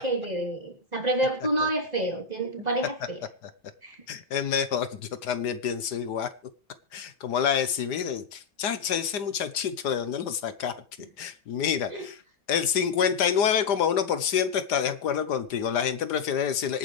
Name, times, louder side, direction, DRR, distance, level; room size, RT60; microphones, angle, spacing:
voice 1, 0.0-3.2 3.8-4.0 11.9-12.0, right 1 dB, 25° right, 2 dB, 3.3 m, -28 dB
voice 2, 4.1-6.3 6.9-10.7 11.2-12.2 12.5-16.8, left 8 dB, 80° left, 12 dB, 1.6 m, -27 dB
25.5 x 9.4 x 3.3 m, 0.32 s
omnidirectional pair, 1.8 m